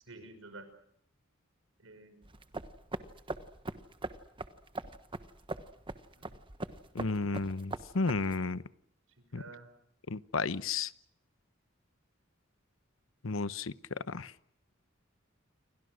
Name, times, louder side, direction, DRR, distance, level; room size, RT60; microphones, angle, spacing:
voice 1, 0.1-0.7 1.8-2.3 6.2-6.3 9.2-9.7, right 2 dB, 80° right, 9 dB, 6.1 m, -50 dB
sound 1, 2.2-8.4, right 2 dB, 25° right, 1.3 m, -42 dB
voice 2, 6.9-8.6 9.3-9.4 10.1-10.9 13.2-14.3, left 4 dB, 75° left, 15 dB, 0.9 m, -33 dB
29.5 x 24.0 x 6.4 m, 0.70 s
head